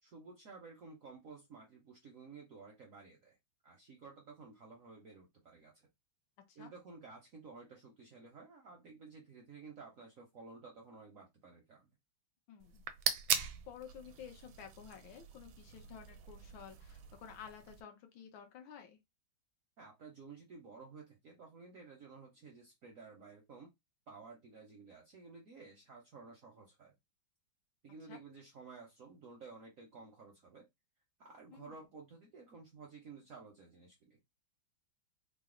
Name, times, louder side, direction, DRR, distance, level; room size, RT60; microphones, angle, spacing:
voice 1, 0.0-3.4 3.6-5.9 6.6-11.9 19.8-23.7 24.1-26.9 27.8-30.7 31.2-34.2, right 4 dB, 65° right, 0.8 m, -54 dB
voice 2, 12.5-12.8 13.7-19.0 28.1-28.2 31.5-31.8, left 8 dB, 75° left, 1.6 m, -52 dB
sound 1, 12.6-17.8, right 8 dB, 80° right, 1.4 m, -40 dB
3.9 x 2.0 x 3.7 m
omnidirectional pair, 2.2 m